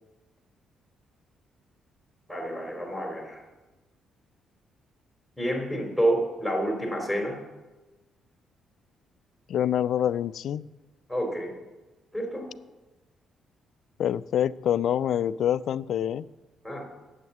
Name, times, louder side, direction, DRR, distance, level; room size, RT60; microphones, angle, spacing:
voice 1, 2.3-3.4 5.4-7.4 11.1-11.5 12.1-12.4 16.6-16.8, right 1 dB, 5° right, 1 dB, 3.8 m, -28 dB
voice 2, 9.5-10.7 14.0-16.3, left 10 dB, 70° left, 17 dB, 0.3 m, -26 dB
9.4 x 8.1 x 7.2 m, 1.1 s
cardioid pair, 90°, 0 cm